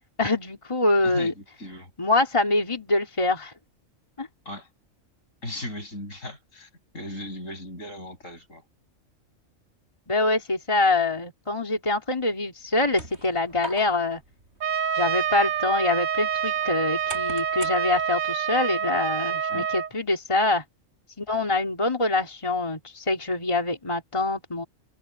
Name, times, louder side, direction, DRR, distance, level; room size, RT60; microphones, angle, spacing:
voice 1, 0.2-1.3 2.0-3.5 4.2-4.3 10.1-14.2 15.0-20.6 21.2-24.7, left 2 dB, 20° left, 2.8 m, -25 dB
voice 2, 1.0-1.9 4.5-4.7 5.4-8.6 19.5-19.7, left 1 dB, 70° left, 7.2 m, -37 dB
sound 1, 12.6-18.3, right 2 dB, 55° right, 6.0 m, -44 dB
Trumpet, 14.6-19.9, right 8 dB, 75° right, 1.5 m, -27 dB
omnidirectional pair, 1.4 m